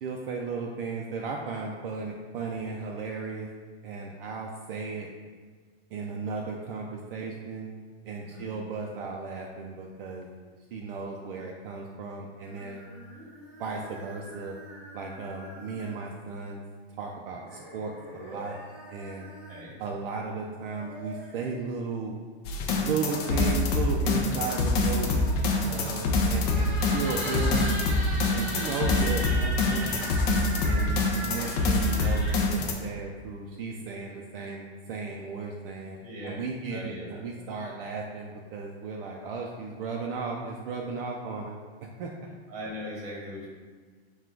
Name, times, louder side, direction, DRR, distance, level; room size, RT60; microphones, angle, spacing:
voice 1, 0.0-3.5 3.8-5.1 5.9-7.7 8.0-10.3 10.7-12.8 13.6-14.6 14.9-16.6 17.0-18.6 18.9-19.3 19.8-22.1 22.8-25.1 25.7-27.7 28.3-29.9 30.6-42.1, right 4 dB, 60° right, 0 dB, 0.5 m, -35 dB
voice 2, 8.2-8.5 19.5-19.7 25.6-25.9 36.0-36.3 36.7-37.2 42.5-43.5, equal, 20° right, -5 dB, 1.0 m, -39 dB
sound 1, 12.5-16.2 17.4-19.7 20.5-21.5 22.6-23.8 24.8-32.4, equal, 5° right, 0.7 m, -40 dB
sound 2, 22.4-32.7, left 2 dB, 40° left, 0.5 m, -25 dB
3.8 x 2.3 x 4.4 m, 1.5 s
supercardioid pair, 165°, 32 cm